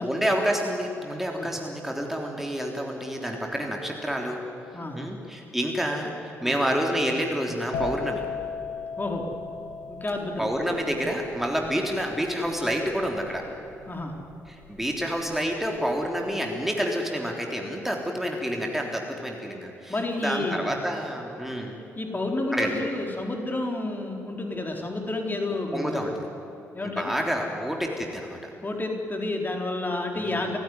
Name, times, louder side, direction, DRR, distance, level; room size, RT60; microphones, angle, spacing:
voice 1, 0.0-4.4 4.9-8.3 10.4-13.5 14.5-21.8 22.5-22.7 25.7-26.1 26.8-28.4 30.2-30.6, equal, 5° right, 1 dB, 3.5 m, -28 dB
voice 2, 4.7-5.1 6.4-6.5 9.0-9.3 9.9-10.5 11.6-11.7 13.9-14.2 19.9-20.7 22.0-26.1 26.7-27.1 28.6-30.6, left 2 dB, 25° left, 2 dB, 4.2 m, -30 dB
sound 1, 7.7-15.3 15.6-16.1, left 5 dB, 60° left, 2.3 m, -36 dB
29.5 x 16.5 x 9.7 m, 2.9 s
figure-of-eight pair, 40°, 8 cm